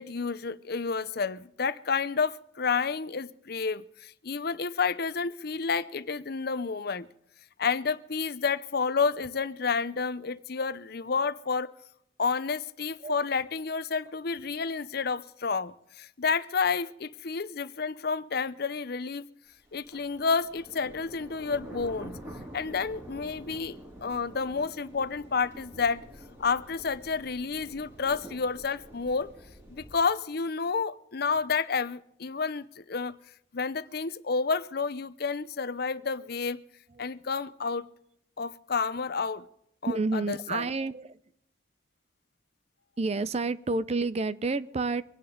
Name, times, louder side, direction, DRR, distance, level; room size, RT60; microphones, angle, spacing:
voice 1, 0.0-7.1 7.6-11.7 12.2-19.3 19.7-22.2 22.5-26.0 26.4-29.3 29.7-33.2 33.5-36.6 37.0-37.9 38.4-39.5 39.8-40.7, left 5 dB, 60° left, 0.7 m, -30 dB
sound 1, 19.7-29.9, right 1 dB, 15° right, 3.4 m, -47 dB
voice 2, 39.9-41.2 43.0-45.0, right 3 dB, 35° right, 0.6 m, -29 dB
25.0 x 10.5 x 3.9 m
head